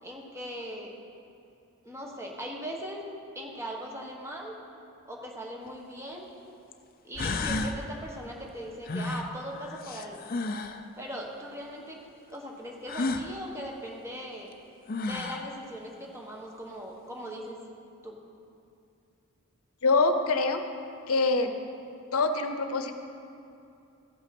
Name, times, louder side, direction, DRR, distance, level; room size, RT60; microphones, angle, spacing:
voice 1, 0.0-0.9 1.8-3.0 3.3-4.5 5.1-6.3 7.0-10.2 11.0-12.0 12.3-14.5 15.0-17.6 18.0-18.2, equal, 10° right, -1 dB, 1.3 m, -39 dB
sound 1, 5.7-5.8 6.7-6.8 7.2-7.8 8.9-10.8 12.9-13.3 14.5-14.6 14.9-15.5, left 3 dB, 40° left, 0.5 m, -32 dB
voice 2, 19.8-20.6 21.1-21.5 22.1-23.0, left 3 dB, 85° left, 8 dB, 0.7 m, -25 dB
14.5 x 5.9 x 6.0 m, 2.6 s
head